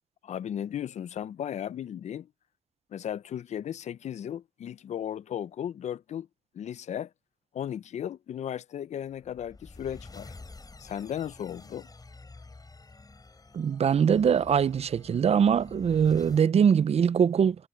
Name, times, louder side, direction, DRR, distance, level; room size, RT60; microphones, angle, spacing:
voice 1, 0.2-2.3 2.9-6.3 6.5-7.1 7.5-10.3 10.8-11.9, left 9 dB, 75° left, 0.5 m, -35 dB
sound 1, 9.1-16.5, left 3 dB, 35° left, 5.1 m, -49 dB
voice 2, 13.5-17.6, right 7 dB, 60° right, 0.6 m, -22 dB
cardioid pair, 60°, 12 cm